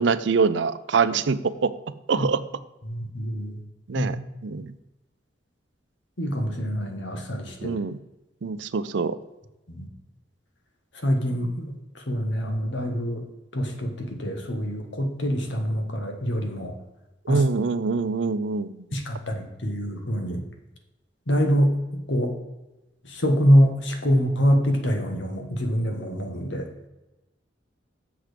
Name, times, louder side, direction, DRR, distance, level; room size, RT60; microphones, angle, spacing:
voice 1, 0.0-1.7 2.1-2.4 3.9-4.2 4.4-4.7 7.6-8.0 8.4-9.2 17.3-18.8, right 4 dB, 70° right, 14 dB, 0.5 m, -24 dB
voice 2, 2.9-3.6 4.0-4.1 6.2-7.7 9.7-9.9 11.0-13.2 13.5-16.8 17.3-17.4 18.9-20.4 21.3-21.8 22.1-22.4 23.0-26.7, equal, 80° left, 4 dB, 1.6 m, -25 dB
7.3 x 6.2 x 5.1 m, 1.0 s
head